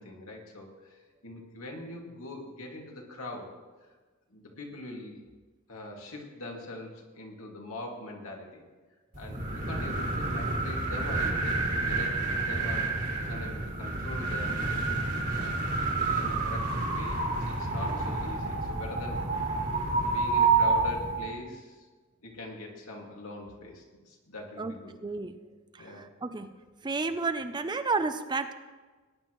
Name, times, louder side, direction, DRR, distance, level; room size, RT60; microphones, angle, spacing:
voice 1, 0.0-3.5 4.3-5.2 5.7-8.6 9.2-12.9 13.3-14.6 15.3-15.6 16.0-19.2 19.9-21.9 22.2-24.9 25.8-26.1, left 2 dB, 80° left, 0 dB, 2.2 m, -42 dB
sound 1, 9.1-21.3, right 3 dB, 40° right, 1.9 m, -29 dB
voice 2, 25.0-25.4 25.7-26.5 26.8-28.5, right 3 dB, 20° right, 10 dB, 0.5 m, -31 dB
18.5 x 9.8 x 3.1 m, 1.3 s
head